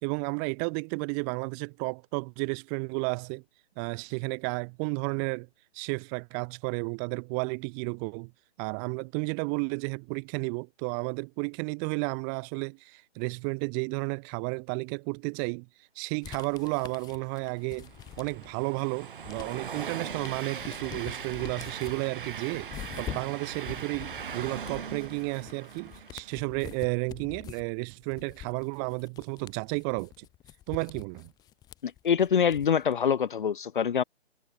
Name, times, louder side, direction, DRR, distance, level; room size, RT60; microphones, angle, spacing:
voice 1, 0.0-3.4 3.8-5.5 5.7-8.3 8.6-15.7 16.0-17.9 18.2-22.7 23.0-30.3 30.7-31.3, right 40 dB or more, 15° right, 2.6 m, -32 dB
sound 1, 16.2-18.6 19.0-32.9, left 12 dB, 10° left, 3.6 m, -45 dB
Train, 17.1-26.5, right 7 dB, 50° right, 4.8 m, -40 dB
voice 2, 31.8-34.0, left 7 dB, 45° left, 2.4 m, -25 dB
figure-of-eight pair, 155°, 34 cm